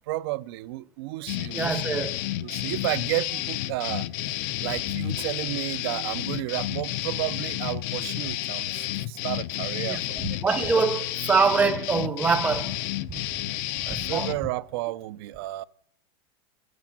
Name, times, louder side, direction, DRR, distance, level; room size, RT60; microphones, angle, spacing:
voice 1, 0.1-2.0 2.4-4.1 4.6-10.4 13.9-15.6, right 18 dB, 65° right, 0.5 m, -32 dB
sound 1, 1.3-14.4, left 14 dB, 50° left, 0.5 m, -31 dB
voice 2, 1.5-2.2 9.9-10.0 10.4-12.7 13.9-14.3, right 5 dB, 10° right, 0.6 m, -24 dB
11.5 x 9.4 x 5.9 m
supercardioid pair, 160°, 14 cm